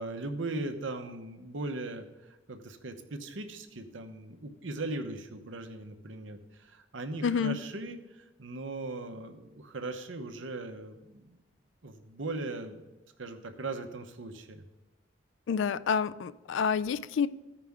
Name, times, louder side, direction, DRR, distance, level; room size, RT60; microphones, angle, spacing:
voice 1, 0.0-2.0 2.5-11.4 11.8-12.8 13.2-14.6, right 2 dB, 80° right, 7 dB, 0.9 m, -39 dB
voice 2, 7.2-7.6 15.5-17.3, left 6 dB, 75° left, 16 dB, 0.4 m, -28 dB
14.5 x 5.0 x 3.6 m, 1.1 s
head